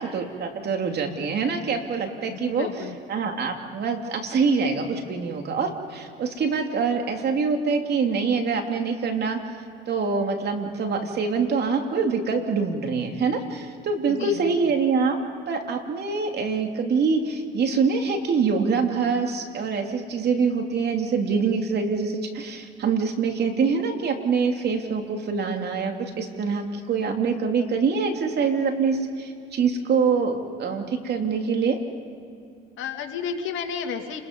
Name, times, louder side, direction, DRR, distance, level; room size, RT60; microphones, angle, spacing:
voice 1, 0.0-2.7 3.1-9.4 9.9-15.2 15.5-31.8, right 5 dB, 50° right, 4 dB, 3.0 m, -25 dB
voice 2, 2.3-2.9 14.1-14.5 32.8-34.2, left 7 dB, 65° left, 5 dB, 2.3 m, -32 dB
30.0 x 21.5 x 5.4 m, 2.4 s
supercardioid pair, 85°, 21 cm